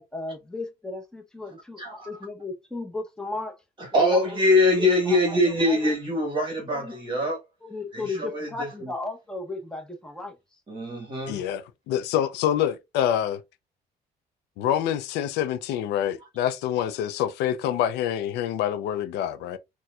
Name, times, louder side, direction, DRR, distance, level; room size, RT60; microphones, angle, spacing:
voice 1, 0.0-3.6 3.9-4.2 4.8-5.2 5.7-5.9 6.7-7.0 7.6-10.3, left 2 dB, 5° left, 0.8 m, -35 dB
voice 2, 1.8-2.1 3.8-7.4 7.9-8.9 10.7-11.4, left 1 dB, 30° right, 1.2 m, -23 dB
voice 3, 11.3-13.4 14.6-19.6, left 10 dB, 85° left, 0.4 m, -26 dB
4.3 x 2.1 x 2.3 m
cardioid pair, 110°, 17 cm